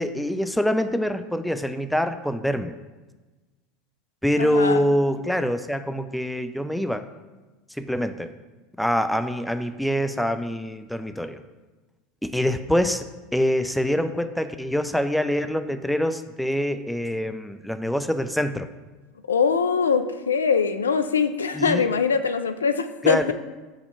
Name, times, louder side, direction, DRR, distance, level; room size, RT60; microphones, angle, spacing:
voice 1, 0.0-2.7 4.2-7.0 7.8-8.3 8.8-11.4 12.2-13.0 13.3-18.7 21.5-21.9 23.0-23.3, equal, ahead, 9 dB, 0.4 m, -25 dB
voice 2, 4.4-4.9 19.3-23.3, left 6 dB, 90° left, 10 dB, 0.3 m, -22 dB
6.5 x 2.9 x 5.5 m, 1.2 s
hypercardioid pair, 80°, 0 cm